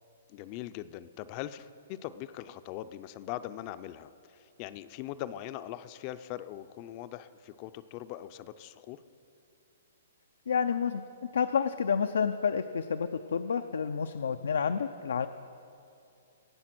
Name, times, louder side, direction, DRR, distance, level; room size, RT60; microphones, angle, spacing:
voice 1, 0.3-9.0, left 13 dB, 30° left, 13 dB, 0.4 m, -41 dB
voice 2, 10.5-11.0 11.3-15.3, left 6 dB, 85° left, 9 dB, 0.4 m, -29 dB
17.5 x 7.4 x 6.0 m, 2.6 s
hypercardioid pair, 160°, 0 cm